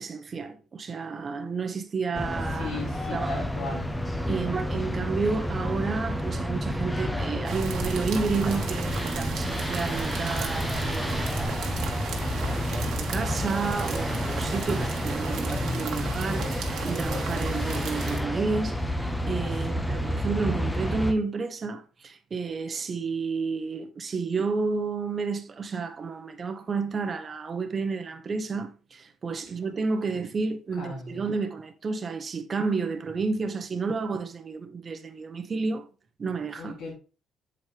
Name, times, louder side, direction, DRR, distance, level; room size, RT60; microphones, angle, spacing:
voice 1, 0.0-2.8 3.1-3.4 4.3-11.8 12.1-35.9 36.2-36.7, right 4 dB, 35° right, 1.0 m, -31 dB
sound 1, 2.1-21.1, equal, 5° left, 0.7 m, -30 dB
voice 2, 2.6-3.9 19.7-19.9 30.8-31.2 36.6-36.9, left 2 dB, 85° left, 3.5 m, -36 dB
sound 2, 7.4-18.2, right 6 dB, 75° right, 1.4 m, -35 dB
7.3 x 4.6 x 3.3 m
cardioid pair, 110°, 0 cm